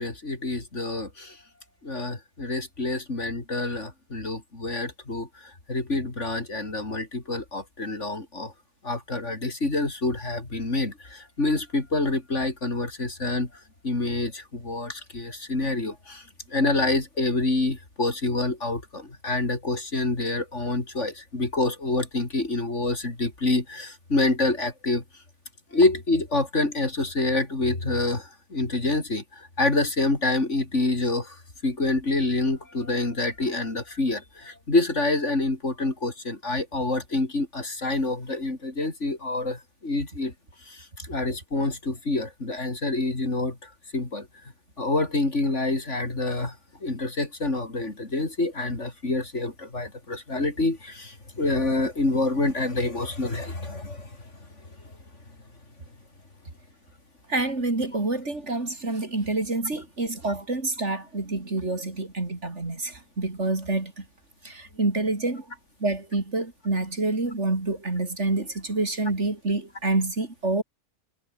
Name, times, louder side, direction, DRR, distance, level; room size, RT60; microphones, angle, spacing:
voice 1, 0.0-1.4 1.8-5.3 5.7-8.5 8.8-13.5 13.8-16.2 16.5-25.0 25.7-31.3 31.6-40.3 40.7-43.6 43.9-44.3 44.8-46.5 46.8-54.1, left 2 dB, 50° left, 4.4 m, -27 dB
voice 2, 57.3-64.0 64.4-65.5 65.8-70.6, right 2 dB, 50° right, 4.0 m, -27 dB
omnidirectional pair, 1.6 m